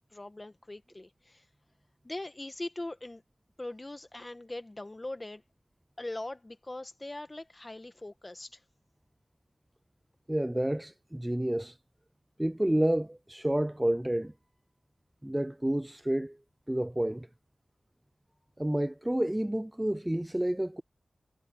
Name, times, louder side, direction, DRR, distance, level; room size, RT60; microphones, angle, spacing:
voice 1, 0.1-1.4 2.0-3.2 3.6-5.4 6.0-8.6, left 2 dB, 25° left, 1.8 m, -41 dB
voice 2, 10.3-11.8 12.4-14.3 15.2-16.4 16.7-17.3 18.6-20.8, right 1 dB, 10° right, 0.4 m, -29 dB
wide cardioid pair, 75°, 0 cm